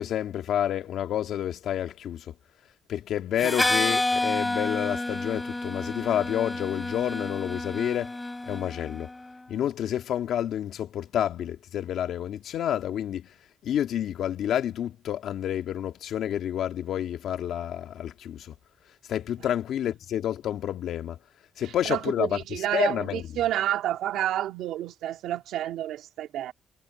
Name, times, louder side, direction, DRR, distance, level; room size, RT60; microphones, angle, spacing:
voice 1, 0.0-2.3 2.9-8.2 8.5-9.1 9.5-13.3 13.6-18.6 19.1-21.2 21.6-22.4 22.7-23.2, left 10 dB, 75° left, 2.0 m, -29 dB
Harmonica, 3.4-9.1, left 2 dB, 15° left, 4.3 m, -29 dB
voice 2, 21.6-26.5, right 12 dB, 85° right, 2.5 m, -29 dB
cardioid pair, 90°, 0 cm